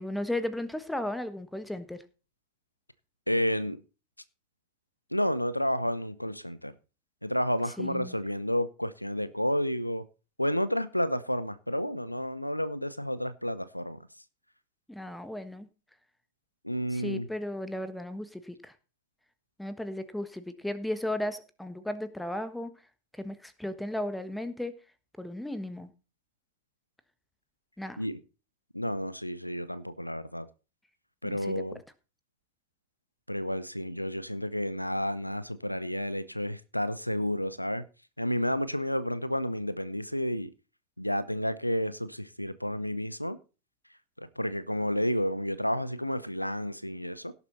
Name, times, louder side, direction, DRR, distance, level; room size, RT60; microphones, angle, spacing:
voice 1, 0.0-2.0 7.8-8.2 14.9-15.7 16.9-18.7 19.6-22.7 23.1-24.7 25.2-25.9 27.8-28.0 31.2-31.6, left 1 dB, 5° left, 1.3 m, -35 dB
voice 2, 3.3-3.8 5.1-6.7 7.2-10.1 10.4-14.0 16.6-17.3 28.0-28.2 28.7-30.5 31.2-31.8 33.3-37.8 38.2-40.5 41.0-43.4 44.2-47.3, equal, 90° left, 0.8 m, -31 dB
17.0 x 7.2 x 4.1 m
figure-of-eight pair, 90°, 0 cm